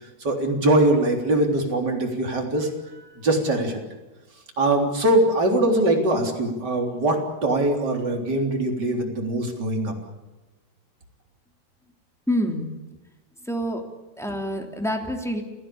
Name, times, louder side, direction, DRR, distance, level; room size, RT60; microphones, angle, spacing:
voice 1, 0.2-3.8 4.6-7.2 7.4-9.9, right 1 dB, 25° right, 2 dB, 3.8 m, -22 dB
voice 2, 12.3-12.7 13.4-13.8 14.2-15.4, equal, ahead, 3 dB, 2.2 m, -26 dB
28.5 x 16.5 x 8.7 m, 1.1 s
omnidirectional pair, 4.7 m